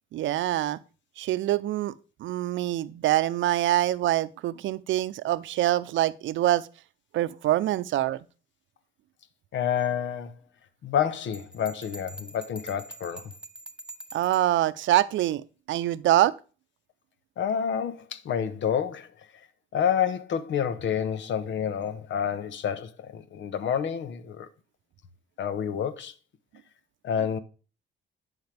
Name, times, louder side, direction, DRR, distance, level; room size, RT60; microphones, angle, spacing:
voice 1, 0.1-0.8 1.2-1.9 2.2-6.7 7.1-8.2 14.1-16.3, right 14 dB, 75° right, 0.6 m, -25 dB
voice 2, 9.5-10.3 10.8-13.3 17.4-19.1 19.7-24.5 25.4-26.1 27.0-27.4, left 8 dB, 70° left, 1.1 m, -28 dB
Bell, 11.3-14.5, right 1 dB, 5° right, 1.0 m, -44 dB
10.5 x 5.7 x 3.4 m
cardioid pair, 90°, 20 cm